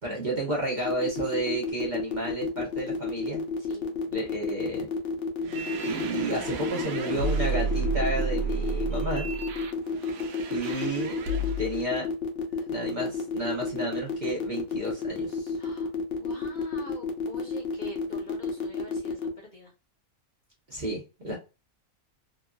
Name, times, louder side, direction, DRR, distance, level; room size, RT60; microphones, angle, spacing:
voice 1, 0.0-3.4 4.1-4.9 5.8-9.3 10.5-11.1 11.6-12.1 12.5-15.6 20.7-21.4, right 1 dB, 40° right, -3 dB, 0.8 m, -32 dB
sound 1, 0.9-19.3, left 5 dB, 60° left, 0.9 m, -31 dB
voice 2, 3.6-3.9 15.6-19.7, left 1 dB, 35° left, -2 dB, 1.0 m, -46 dB
sound 2, 5.4-11.9, right 3 dB, 75° right, 1.0 m, -31 dB
3.0 x 2.6 x 2.2 m, 0.30 s
omnidirectional pair, 1.5 m